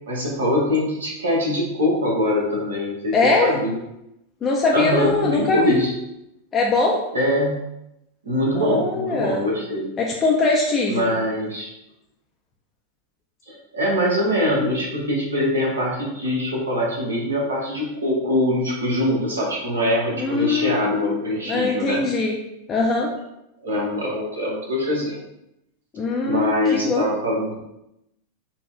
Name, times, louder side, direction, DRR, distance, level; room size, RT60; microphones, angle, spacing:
voice 1, 0.1-3.8 4.7-5.9 7.1-7.6 8.2-9.9 10.9-11.7 13.5-22.0 23.6-25.2 26.2-27.5, left 1 dB, 70° right, -2 dB, 0.9 m, -23 dB
voice 2, 3.1-3.5 4.4-5.8 6.5-7.0 8.6-9.5 10.0-11.1 20.2-22.3 22.7-23.1 25.9-27.1, left 3 dB, 25° left, -2 dB, 0.4 m, -21 dB
4.1 x 2.0 x 2.4 m, 0.87 s
figure-of-eight pair, 90°, 0 cm